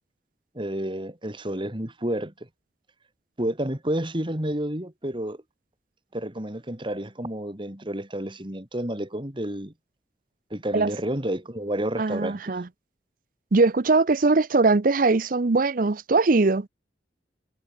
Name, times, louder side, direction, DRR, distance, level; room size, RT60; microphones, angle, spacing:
voice 1, 0.5-2.3 3.4-5.4 6.1-9.7 10.5-12.5, right 1 dB, 30° right, 3.2 m, -30 dB
voice 2, 12.0-12.7 13.5-16.7, right 3 dB, 50° right, 0.7 m, -21 dB
head